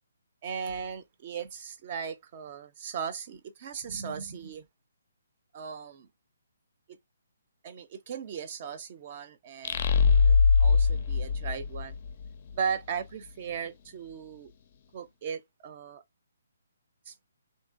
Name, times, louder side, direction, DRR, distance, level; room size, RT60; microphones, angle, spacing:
voice 1, 0.4-4.7 5.5-6.1 6.9-7.0 7.6-9.9 10.2-12.0 12.5-14.5 14.9-16.0 17.1-17.2, right 6 dB, 35° right, 0.6 m, -37 dB
sound 1, 9.6-12.3, left 5 dB, 40° left, 0.4 m, -22 dB
3.4 x 2.8 x 2.4 m
figure-of-eight pair, 135°, 0 cm